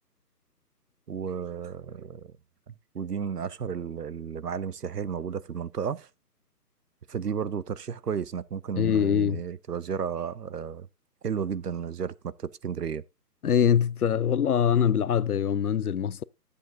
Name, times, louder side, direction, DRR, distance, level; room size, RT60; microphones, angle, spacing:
voice 1, 1.1-2.3 2.7-6.1 7.1-10.9 11.2-13.0, right 7 dB, 70° right, 0.7 m, -33 dB
voice 2, 8.8-9.4 13.4-16.2, left 8 dB, 65° left, 0.5 m, -23 dB
12.0 x 8.2 x 2.6 m
figure-of-eight pair, 145°, 48 cm